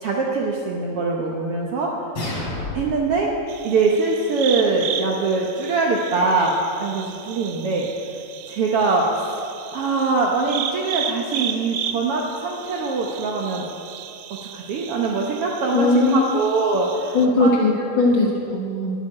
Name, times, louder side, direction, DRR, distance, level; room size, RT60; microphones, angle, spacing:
voice 1, 0.0-1.9 2.7-3.3 3.6-7.9 8.5-9.3 9.7-13.7 14.3-17.5, right 3 dB, 65° right, -1 dB, 1.4 m, -23 dB
sound 1, 2.2-3.2, left 2 dB, 40° left, 3.6 m, -29 dB
sound 2, 3.5-17.3, right 9 dB, 80° right, 1.5 m, -34 dB
voice 2, 15.7-16.3 17.1-18.9, left 2 dB, 55° left, -2 dB, 1.5 m, -19 dB
10.5 x 8.2 x 9.8 m, 2.6 s
omnidirectional pair, 3.7 m